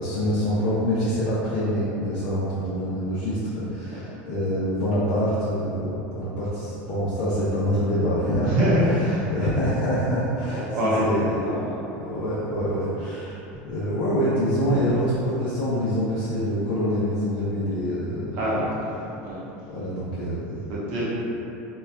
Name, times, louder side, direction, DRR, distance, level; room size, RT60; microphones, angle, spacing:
voice 1, 0.0-8.5 8.9-11.5 12.0-18.4 19.7-20.7, equal, 65° left, -10 dB, 0.5 m, -26 dB
voice 2, 8.4-9.5 10.5-11.8 14.6-14.9 18.3-18.6 19.2-19.4 20.7-21.0, equal, 70° right, -8 dB, 0.9 m, -25 dB
3.0 x 2.2 x 2.2 m, 2.9 s
supercardioid pair, 135°, 6 cm